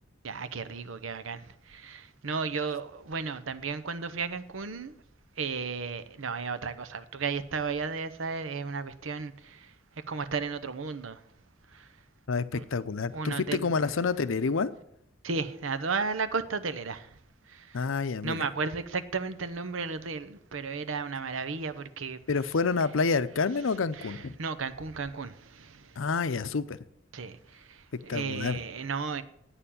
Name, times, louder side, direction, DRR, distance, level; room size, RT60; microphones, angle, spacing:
voice 1, 0.2-4.9 5.4-9.7 10.1-11.2 11.7-11.9 12.5-12.6 13.1-13.7 15.2-17.1 17.5-17.8 18.2-22.2 24.0-25.9 27.1-29.2, right 4 dB, 85° right, 0.8 m, -34 dB
voice 2, 12.3-14.7 17.7-18.4 22.3-24.4 26.0-26.8 28.1-28.6, left 4 dB, 85° left, 0.6 m, -28 dB
8.9 x 6.9 x 8.7 m
head